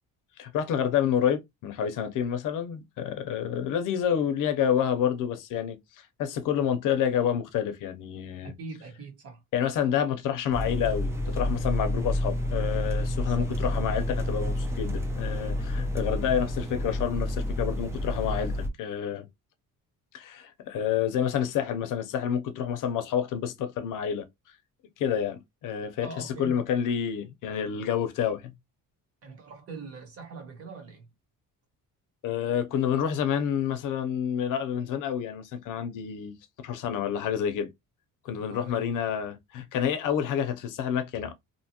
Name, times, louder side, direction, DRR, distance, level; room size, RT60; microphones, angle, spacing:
voice 1, 0.4-5.8 6.2-8.5 9.5-19.3 20.1-24.3 25.0-28.5 32.2-36.3 36.6-37.7 38.2-41.3, left 8 dB, 65° left, 0.6 m, -28 dB
voice 2, 8.4-9.4 13.2-13.5 26.0-26.6 29.2-31.0 38.3-38.9, right 3 dB, 45° right, 1.1 m, -42 dB
sound 1, 10.5-18.7, left 1 dB, 10° right, 0.3 m, -29 dB
2.8 x 2.3 x 2.8 m
cardioid pair, 175°, 33 cm